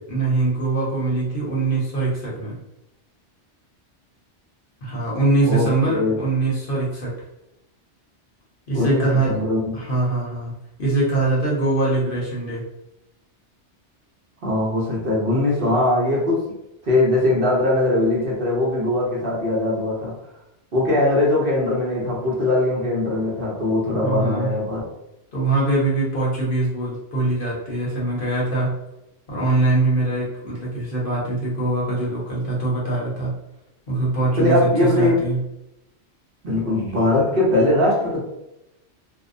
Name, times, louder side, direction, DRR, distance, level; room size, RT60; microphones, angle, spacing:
voice 1, 0.1-2.5 4.8-7.1 8.7-9.4 9.7-10.5 10.8-12.7 23.8-24.5 25.3-28.7 29.3-33.3 33.9-35.4, right 2 dB, 55° left, -5 dB, 0.9 m, -22 dB
voice 2, 5.4-6.1 8.7-9.7 14.4-16.4 16.8-20.1 20.7-24.8 34.3-35.2 36.4-38.2, left 2 dB, 55° right, -5 dB, 1.0 m, -21 dB
2.7 x 2.0 x 2.5 m, 0.88 s
omnidirectional pair, 1.2 m